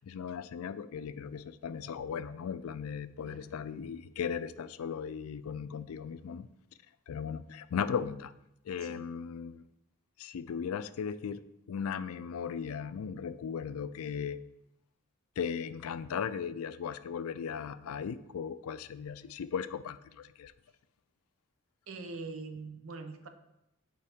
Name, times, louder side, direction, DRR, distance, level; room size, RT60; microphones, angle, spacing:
voice 1, 0.0-6.5 7.1-8.3 8.7-9.6 10.2-11.4 11.7-14.4 15.4-20.5, left 7 dB, 90° left, 14 dB, 0.4 m, -37 dB
voice 2, 21.9-23.3, right 3 dB, 75° right, 7 dB, 0.7 m, -43 dB
8.2 x 4.7 x 3.5 m, 0.85 s
head